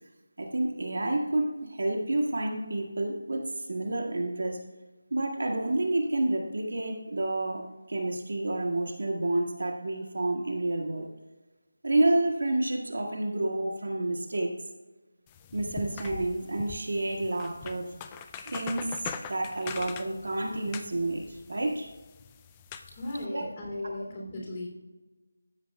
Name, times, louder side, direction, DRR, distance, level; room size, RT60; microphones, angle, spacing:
voice 1, 0.4-4.6 5.1-11.1 11.8-14.5 15.5-17.9 18.5-21.9 23.3-23.5 23.8-23.9, right 2 dB, 65° right, 1 dB, 1.6 m, -29 dB
sound 1, 15.3-23.2, left 7 dB, 15° left, 0.3 m, -43 dB
voice 2, 22.9-24.7, left 1 dB, 30° left, -3 dB, 2.9 m, -36 dB
13.0 x 7.6 x 2.3 m, 1.2 s
figure-of-eight pair, 165°, 0 cm